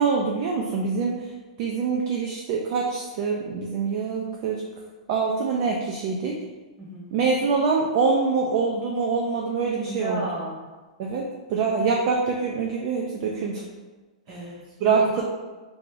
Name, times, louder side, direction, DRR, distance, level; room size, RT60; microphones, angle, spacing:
voice 1, 0.0-1.3 1.6-4.6 5.1-6.4 7.1-10.2 11.0-11.2 11.5-13.6 14.3-14.5 14.8-15.2, right 5 dB, 40° right, 0 dB, 0.4 m, -25 dB
voice 2, 6.8-7.1 9.8-10.7 14.3-15.1, right 1 dB, 25° right, -5 dB, 1.1 m, -32 dB
3.0 x 2.4 x 3.8 m, 1.3 s
hypercardioid pair, 150°, 4 cm